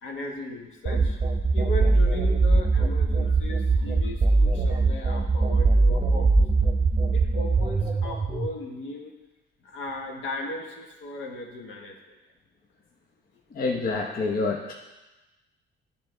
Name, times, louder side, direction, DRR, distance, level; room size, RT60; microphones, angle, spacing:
voice 1, 0.0-1.2 1.5-6.3 7.1-9.1 9.6-12.2, left 1 dB, 75° left, 1 dB, 1.2 m, -37 dB
sound 1, 0.9-8.5, right 3 dB, 25° right, 0.8 m, -22 dB
voice 2, 13.5-14.7, left 3 dB, 50° left, 1 dB, 0.8 m, -27 dB
10.0 x 3.6 x 3.8 m, 1.1 s
cardioid pair, 90°, 20 cm